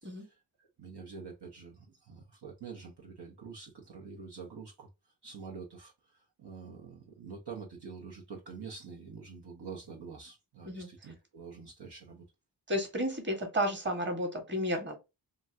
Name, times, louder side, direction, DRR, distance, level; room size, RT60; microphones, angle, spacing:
voice 1, 0.0-4.9 5.2-12.3, right 5 dB, 60° right, 1.0 m, -47 dB
voice 2, 12.7-15.0, equal, 25° right, 1.4 m, -32 dB
2.9 x 2.4 x 2.7 m
cardioid pair, 40°, 47 cm